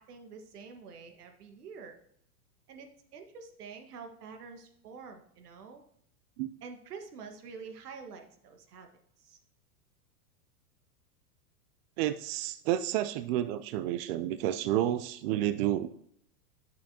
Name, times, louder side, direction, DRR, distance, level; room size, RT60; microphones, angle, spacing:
voice 1, 0.0-2.0 2.7-5.8 6.6-8.9 9.2-9.4, right 5 dB, 80° right, 5 dB, 1.6 m, -47 dB
voice 2, 12.0-15.9, right 12 dB, 40° right, 11 dB, 0.4 m, -30 dB
11.0 x 6.3 x 2.8 m, 0.71 s
hypercardioid pair, 115°, 46 cm